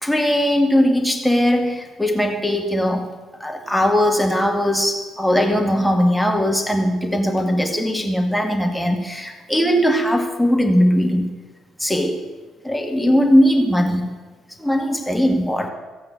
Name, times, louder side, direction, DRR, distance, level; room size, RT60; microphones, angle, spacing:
voice 1, 0.0-3.1 3.4-11.3 11.8-12.3 12.6-14.2 14.6-15.7, equal, ahead, 3 dB, 2.0 m, -19 dB
16.0 x 8.6 x 8.0 m, 1.3 s
figure-of-eight pair, 45°, 0 cm